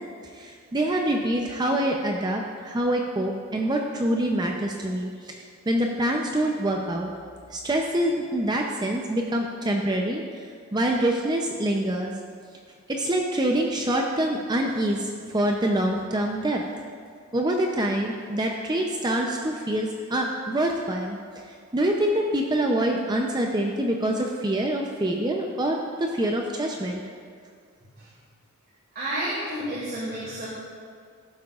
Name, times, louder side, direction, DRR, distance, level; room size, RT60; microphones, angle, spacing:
voice 1, 0.3-7.1 7.5-10.4 10.7-12.1 12.9-16.6 17.3-21.2 21.7-27.0, right 1 dB, 20° right, 1 dB, 0.5 m, -25 dB
voice 2, 28.9-30.5, right 1 dB, 50° right, -9 dB, 2.3 m, -30 dB
16.5 x 7.7 x 2.4 m, 2.1 s
head